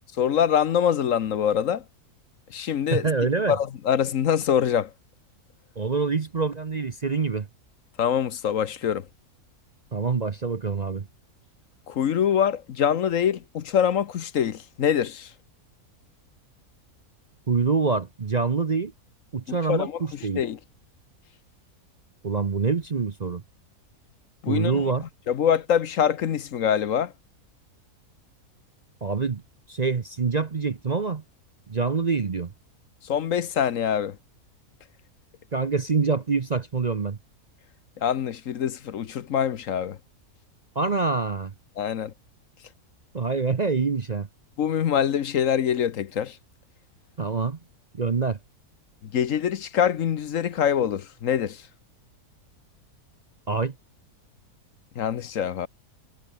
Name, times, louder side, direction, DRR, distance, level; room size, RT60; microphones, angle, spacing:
voice 1, 0.2-1.8 2.5-3.1 3.5-4.9 8.0-9.1 11.9-15.3 19.5-20.6 24.4-24.9 25.3-27.1 33.0-34.2 38.0-40.0 41.8-42.1 44.6-46.4 49.0-51.6 55.0-55.7, left 8 dB, 60° left, 1.2 m, -24 dB
voice 2, 2.9-3.6 5.8-7.5 9.9-11.1 17.5-18.9 19.3-20.4 22.2-23.4 24.5-25.0 29.0-29.4 29.7-31.2 31.7-32.5 35.5-37.2 40.7-41.5 43.1-44.3 47.2-47.6 47.9-48.4 53.5-53.7, right 4 dB, 35° right, 0.8 m, -25 dB
omnidirectional pair, 1.6 m